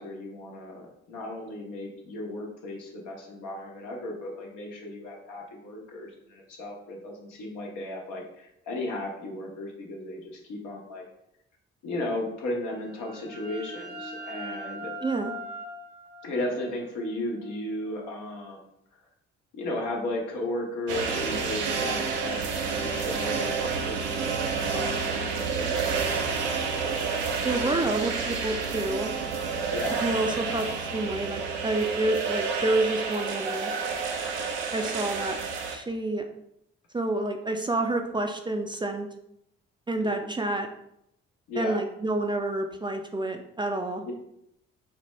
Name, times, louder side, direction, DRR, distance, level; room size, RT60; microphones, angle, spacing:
voice 1, 0.0-11.0 11.8-14.9 16.2-18.7 19.5-22.4 22.7-25.9 29.7-30.0 30.3-30.6 40.0-40.3 41.5-41.8 44.1-44.2, left 1 dB, 70° left, -1 dB, 0.9 m, -35 dB
sound 1, 12.7-18.2, right 1 dB, 70° right, 0.9 m, -41 dB
voice 2, 15.0-15.3 27.4-29.1 30.0-30.7 30.9-33.7 34.7-35.4 35.7-36.3 36.9-39.1 39.9-40.7 41.6-44.0, right 2 dB, 15° right, 4 dB, 0.4 m, -28 dB
sound 2, 20.9-35.8, right 5 dB, 85° right, 0.5 m, -29 dB
4.3 x 2.2 x 3.1 m, 0.77 s
hypercardioid pair, 45°, 31 cm